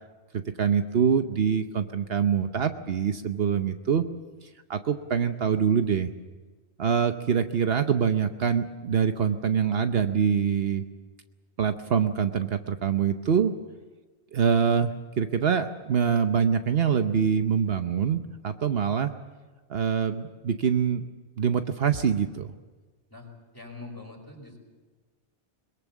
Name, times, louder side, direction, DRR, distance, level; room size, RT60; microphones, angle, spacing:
voice 1, 0.3-4.0 4.7-6.1 6.8-10.8 11.6-13.5 14.3-19.1 19.7-21.1 21.4-22.5, right 7 dB, 65° right, 8 dB, 1.1 m, -25 dB
voice 2, 23.1-24.6, left 3 dB, 20° left, 1 dB, 5.0 m, -43 dB
22.0 x 21.5 x 7.3 m, 1.3 s
omnidirectional pair, 1.1 m